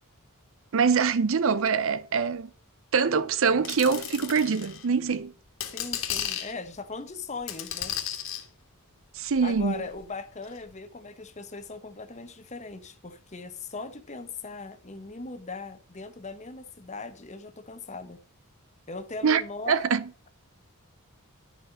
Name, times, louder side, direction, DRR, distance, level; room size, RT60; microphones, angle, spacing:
voice 1, 0.7-2.5 2.9-5.3 9.1-9.8 19.2-19.4 19.7-20.0, right 5 dB, 60° right, 0.5 m, -24 dB
sound 1, 3.6-4.9 5.5-6.5 7.5-8.4 9.3-10.0 10.5-10.6, left 10 dB, 65° left, 1.8 m, -34 dB
voice 2, 5.7-7.9 9.4-18.2 18.9-19.9, left 4 dB, 30° left, 1.0 m, -39 dB
11.0 x 5.8 x 5.5 m
head